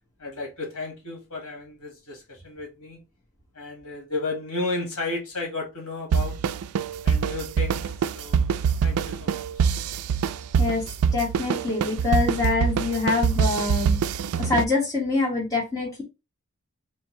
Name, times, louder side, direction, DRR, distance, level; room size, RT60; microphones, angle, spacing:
voice 1, 0.2-3.0 3.5-6.4 7.0-9.7, left 3 dB, 80° left, 1.8 m, -33 dB
sound 1, 6.1-14.6, right 6 dB, 85° right, 0.3 m, -24 dB
voice 2, 11.1-14.0 14.4-16.0, left 3 dB, 15° left, 1.6 m, -25 dB
4.4 x 2.8 x 3.0 m
head